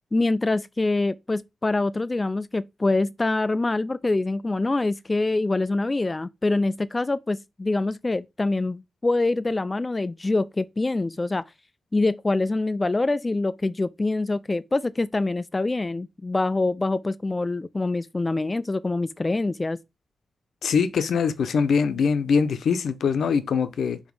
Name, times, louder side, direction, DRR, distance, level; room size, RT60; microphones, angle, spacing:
voice 1, 0.1-11.4 11.9-19.8, left 2 dB, 20° left, 0.3 m, -25 dB
voice 2, 20.6-24.0, left 6 dB, 80° left, 0.8 m, -23 dB
5.1 x 4.4 x 5.4 m
wide cardioid pair, 115°, 0 cm